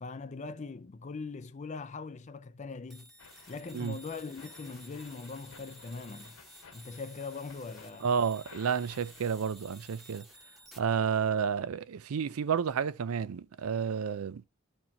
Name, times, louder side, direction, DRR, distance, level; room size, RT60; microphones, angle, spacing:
voice 1, 0.0-3.1 3.5-6.4 6.7-8.1, left 4 dB, 35° left, 0.4 m, -41 dB
sound 1, 2.9-10.8, equal, ahead, 1.0 m, -54 dB
sound 2, 3.2-9.3, left 4 dB, 80° left, 1.8 m, -56 dB
voice 2, 8.0-10.2 10.8-14.4, right 7 dB, 90° right, 0.4 m, -30 dB
12.5 x 4.4 x 2.8 m
head